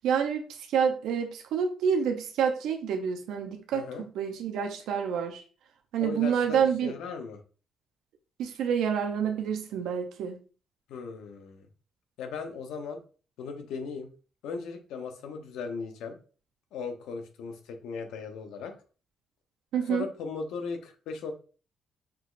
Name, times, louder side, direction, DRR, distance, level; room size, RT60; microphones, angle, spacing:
voice 1, 0.0-5.4 5.9-6.9 8.4-10.4 19.7-20.1, right 7 dB, 85° right, 4 dB, 0.5 m, -28 dB
voice 2, 3.7-4.1 6.0-7.4 10.9-11.7 12.2-13.0 13.4-14.1 14.4-16.2 16.7-18.7 19.9-21.3, left 5 dB, 85° left, 6 dB, 0.8 m, -37 dB
6.0 x 2.9 x 2.4 m, 0.37 s
cardioid pair, 90°, 0 cm